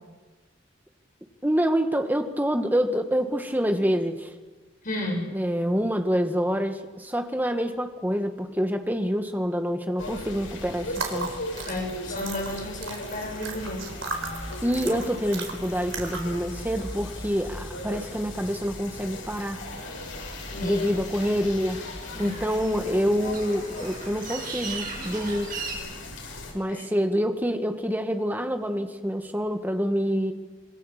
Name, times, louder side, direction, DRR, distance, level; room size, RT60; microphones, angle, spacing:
voice 1, 1.4-4.3 5.3-11.3 14.6-19.6 20.6-21.8 22.2-25.5 26.5-30.3, equal, 10° right, 6 dB, 1.6 m, -26 dB
voice 2, 4.8-5.4 11.6-13.9 20.5-20.9 22.1-22.4 26.7-26.9, left 1 dB, 45° left, 1 dB, 6.9 m, -32 dB
sound 1, 10.0-26.5, left 2 dB, 90° left, 7.0 m, -38 dB
sound 2, 10.9-16.4, right 5 dB, 75° right, 4.2 m, -36 dB
sound 3, 19.7-25.7, right 5 dB, 45° right, 7.6 m, -40 dB
27.0 x 23.0 x 7.5 m, 1.4 s
head